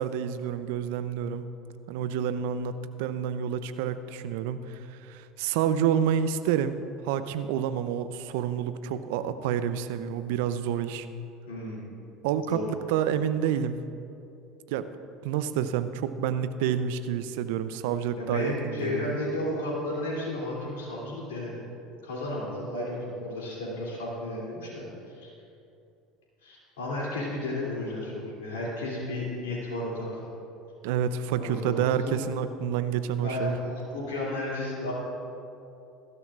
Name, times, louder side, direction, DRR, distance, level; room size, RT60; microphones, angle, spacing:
voice 1, 0.0-1.5 1.9-6.8 7.0-11.1 12.2-12.6 12.9-13.8 14.7-14.9 15.2-19.1 30.8-33.5, right 9 dB, 70° right, 12 dB, 0.6 m, -28 dB
voice 2, 11.5-11.9 12.5-12.7 18.2-21.6 22.0-25.3 26.4-30.3 31.3-32.2 32.8-34.9, left 1 dB, 75° left, -5 dB, 2.9 m, -33 dB
21.5 x 13.0 x 2.5 m, 2.7 s
hypercardioid pair, 70°, 0 cm